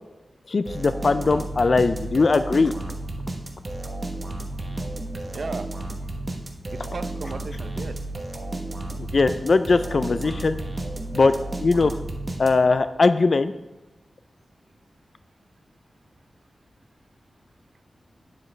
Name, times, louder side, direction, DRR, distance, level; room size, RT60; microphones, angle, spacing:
voice 1, 0.5-2.7 9.1-10.6 11.1-11.3 11.6-12.0 12.4-13.5, left 3 dB, 50° left, 11 dB, 0.3 m, -20 dB
sound 1, 0.7-12.9, right 2 dB, 30° right, 0.9 m, -33 dB
voice 2, 5.3-5.7 6.7-8.0, right 4 dB, 60° right, 11 dB, 0.5 m, -35 dB
9.2 x 7.5 x 3.2 m, 1.1 s
wide cardioid pair, 115°, 0 cm